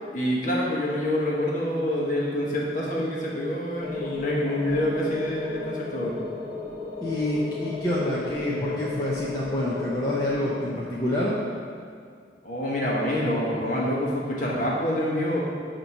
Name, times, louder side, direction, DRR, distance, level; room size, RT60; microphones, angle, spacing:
voice 1, 0.1-6.1 12.4-15.4, left 1 dB, 45° left, -4 dB, 1.3 m, -26 dB
sound 1, 3.8-10.6, left 3 dB, 15° right, 1.3 m, -35 dB
voice 2, 7.0-11.4, left 1 dB, 20° left, -7 dB, 0.7 m, -27 dB
8.4 x 2.9 x 6.0 m, 2.1 s
head